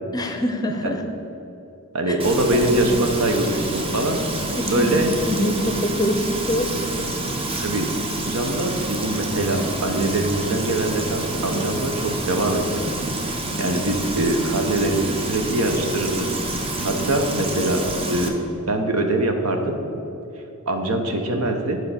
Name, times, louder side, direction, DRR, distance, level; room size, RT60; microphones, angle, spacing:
voice 1, 0.1-1.0 2.5-3.0 4.6-4.9 5.3-6.7, left 1 dB, 15° left, 5 dB, 0.6 m, -24 dB
voice 2, 1.9-4.2 4.7-5.1 7.6-7.9 8.3-12.8 13.3-17.8 18.1-18.4 18.7-19.8 20.7-21.8, right 1 dB, 70° right, 4 dB, 1.0 m, -23 dB
Frying (food), 2.2-18.3, right 2 dB, 25° right, 0.8 m, -28 dB
8.5 x 4.6 x 6.8 m, 3.0 s
head